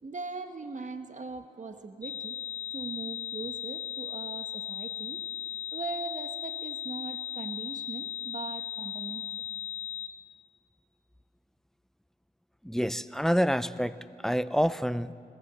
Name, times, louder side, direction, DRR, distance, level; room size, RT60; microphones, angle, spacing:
voice 1, 0.0-2.4 2.7-9.5, right 4 dB, 50° right, 7 dB, 1.6 m, -40 dB
sound 1, 2.0-10.1, left 11 dB, 45° left, 1.4 m, -37 dB
voice 2, 12.6-15.1, equal, 5° left, 15 dB, 0.6 m, -28 dB
21.0 x 17.5 x 7.7 m, 2.4 s
cardioid pair, 55°, 16 cm